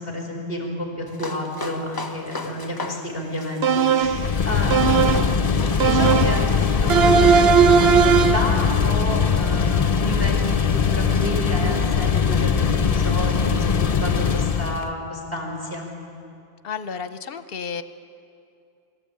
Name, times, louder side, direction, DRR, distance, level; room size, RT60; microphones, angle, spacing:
voice 1, 0.0-15.9, equal, 15° right, 1 dB, 4.8 m, -31 dB
sound 1, 1.1-8.0, left 2 dB, 20° left, 1.2 m, -37 dB
sound 2, 3.6-4.3 4.7-5.4 5.8-6.5 6.9-8.5, right 7 dB, 70° right, 1.0 m, -17 dB
sound 3, 4.1-14.9, left 6 dB, 45° left, 0.6 m, -21 dB
voice 2, 16.6-17.8, left 6 dB, 65° left, 12 dB, 1.0 m, -32 dB
24.0 x 13.5 x 8.8 m, 2.5 s
omnidirectional pair, 1.1 m